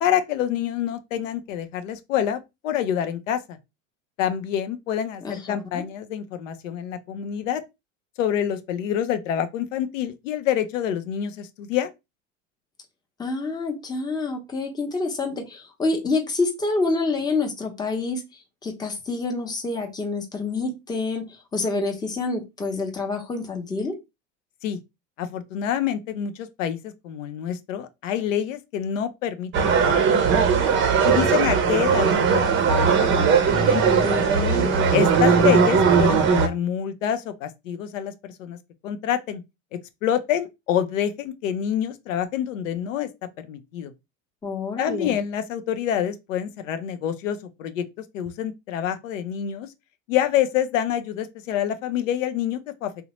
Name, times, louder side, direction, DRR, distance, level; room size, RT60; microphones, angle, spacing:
voice 1, 0.0-3.6 4.2-7.6 8.2-11.9 24.6-24.8 25.2-30.6 31.0-33.8 34.9-38.6 38.8-39.4 40.0-43.1 43.4-43.9 44.8-47.8 48.1-49.7 50.1-52.9, left 10 dB, 90° left, 0.5 m, -27 dB
voice 2, 13.2-18.2 18.6-24.0 33.9-34.8 44.4-45.2, left 3 dB, 10° left, 0.7 m, -27 dB
sound 1, 29.5-36.5, right 6 dB, 35° right, 0.5 m, -19 dB
2.8 x 2.1 x 2.9 m
supercardioid pair, 105°, 38 cm